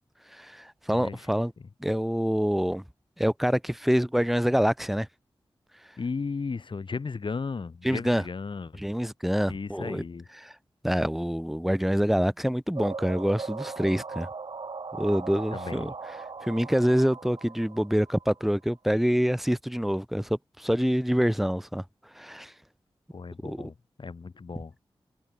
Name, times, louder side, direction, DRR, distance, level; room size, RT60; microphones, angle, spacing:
voice 1, 0.3-1.5 1.8-2.8 3.2-5.1 7.8-8.2 8.8-10.0 10.4-10.5 10.8-14.3 15.0-15.9 16.4-21.8 22.1-22.5 23.4-23.7, equal, ahead, 1.4 m, -26 dB
voice 2, 0.9-1.2 1.6-1.7 6.0-8.8 9.5-10.3 15.5-15.9 23.1-24.7, left 4 dB, 60° left, 8.0 m, -35 dB
sound 1, 12.8-18.5, right 4 dB, 60° right, 4.4 m, -39 dB
wide cardioid pair, 80°, 9 cm